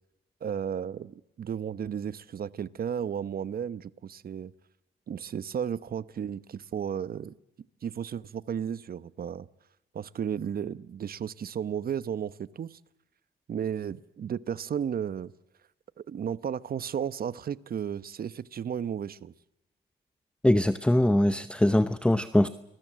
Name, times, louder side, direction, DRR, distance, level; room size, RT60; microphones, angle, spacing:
voice 1, 0.4-4.5 5.1-7.4 7.8-9.5 9.9-12.8 13.5-15.3 16.0-19.3, right 8 dB, 50° right, 1.0 m, -34 dB
voice 2, 20.4-22.5, left 1 dB, 5° left, 0.8 m, -22 dB
28.5 x 21.0 x 7.5 m
cardioid pair, 90°, 20 cm